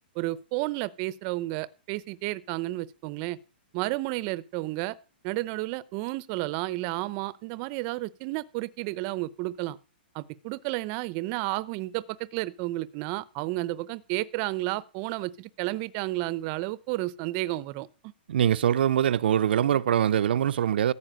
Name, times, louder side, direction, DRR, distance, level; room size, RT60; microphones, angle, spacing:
voice 1, 0.2-3.4 3.7-5.0 5.2-9.8 10.1-18.1, right 19 dB, 35° right, 0.7 m, -32 dB
voice 2, 18.3-20.9, right 10 dB, 70° right, 0.6 m, -23 dB
14.0 x 5.8 x 8.9 m
hypercardioid pair, 150°, 6 cm